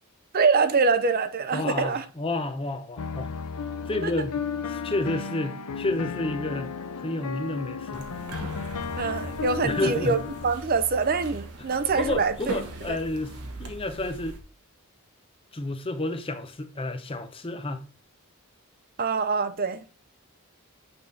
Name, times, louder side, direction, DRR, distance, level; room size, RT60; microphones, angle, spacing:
voice 1, 0.3-2.0 4.0-4.1 9.0-12.3 12.9-13.0 19.0-19.8, right 4 dB, 40° right, 0.6 m, -24 dB
voice 2, 1.5-3.3 3.8-4.3 4.7-8.1 9.6-10.2 11.6-11.7 12.0-14.4 15.5-17.8, left 2 dB, 25° left, 0.6 m, -30 dB
sound 1, 3.0-10.5, left 5 dB, 90° left, 0.6 m, -34 dB
sound 2, 7.9-14.4, right 1 dB, 85° right, 1.3 m, -40 dB
8.7 x 3.6 x 3.9 m
head